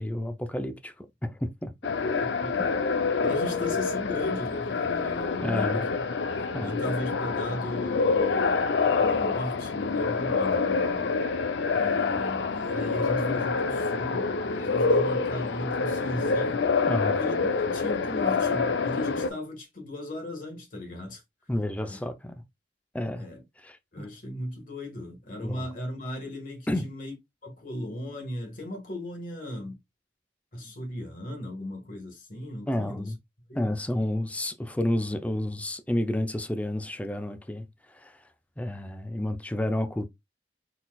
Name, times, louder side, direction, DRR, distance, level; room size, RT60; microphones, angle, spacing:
voice 1, 0.0-1.7 5.4-5.9 6.5-6.8 16.9-17.2 21.5-22.4 22.9-23.3 23.6-24.1 25.4-25.7 26.7-26.8 32.7-33.2 33.5-38.1 38.6-40.1, left 1 dB, 10° left, 0.4 m, -30 dB
sound 1, 1.8-19.3, left 4 dB, 80° left, 0.5 m, -27 dB
voice 2, 3.2-6.0 6.6-8.6 9.0-11.2 11.7-16.7 17.1-21.2 21.8-22.0 23.2-23.4 23.9-27.1 27.4-29.8 30.5-33.1 33.5-33.7, left 1 dB, 50° left, 1.5 m, -36 dB
4.1 x 4.0 x 2.3 m
head